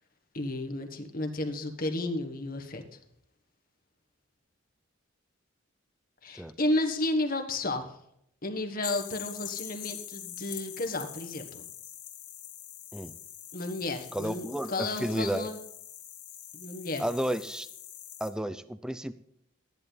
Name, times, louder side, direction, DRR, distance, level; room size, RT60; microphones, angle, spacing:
voice 1, 0.3-2.8 6.2-8.0 8.4-11.6 13.5-15.6 16.5-17.0, left 2 dB, 45° left, 5 dB, 1.5 m, -32 dB
sound 1, 8.8-18.3, left 11 dB, 60° left, 2.4 m, -44 dB
voice 2, 14.1-15.5 17.0-17.7 18.2-19.1, right 1 dB, 5° right, 13 dB, 0.5 m, -32 dB
13.5 x 10.5 x 4.0 m, 0.73 s
head